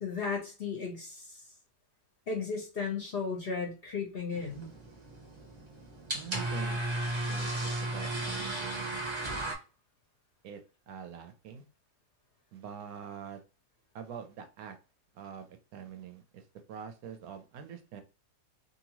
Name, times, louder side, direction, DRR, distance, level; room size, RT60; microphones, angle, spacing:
voice 1, 0.0-1.4 2.3-4.7, left 5 dB, 50° left, 0 dB, 0.8 m, -35 dB
sound 1, 4.3-9.5, right 1 dB, 30° right, 0.6 m, -35 dB
voice 2, 6.1-6.8 7.3-9.1 10.4-10.6 10.9-11.6 12.5-13.4 13.9-14.8 15.1-18.0, right 8 dB, 75° right, 7 dB, 1.0 m, -45 dB
2.8 x 2.5 x 2.9 m, 0.33 s
omnidirectional pair, 1.7 m